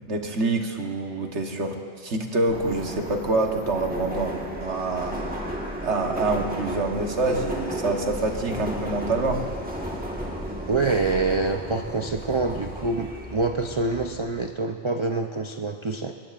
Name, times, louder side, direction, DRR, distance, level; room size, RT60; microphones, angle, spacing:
voice 1, 0.1-4.3 4.6-5.4 5.8-9.4, right 2 dB, 65° right, 3 dB, 1.5 m, -26 dB
Subway metro underground, 2.5-14.5, equal, 5° right, 1.4 m, -34 dB
voice 2, 10.7-16.1, right 3 dB, 40° right, 4 dB, 0.4 m, -26 dB
21.0 x 20.0 x 2.5 m, 2.3 s
omnidirectional pair, 1.3 m